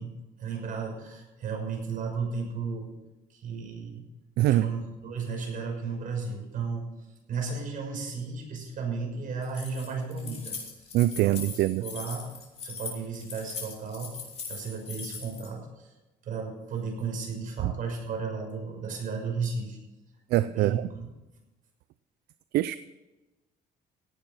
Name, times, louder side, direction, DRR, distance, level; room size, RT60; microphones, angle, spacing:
voice 1, 0.0-2.9 3.3-4.0 4.4-6.9 7.3-10.6 11.2-12.3 12.6-14.2 14.5-15.9 16.2-19.8 20.4-20.7, right 5 dB, 55° right, 2 dB, 6.0 m, -34 dB
Keys jangling, 9.4-15.5, left 5 dB, 40° left, 5.5 m, -40 dB
voice 2, 10.9-11.8 17.6-17.7 20.3-20.9 22.5-22.8, right 15 dB, 75° right, 14 dB, 0.5 m, -23 dB
17.5 x 9.2 x 5.9 m, 1.1 s
cardioid pair, 110°, 17 cm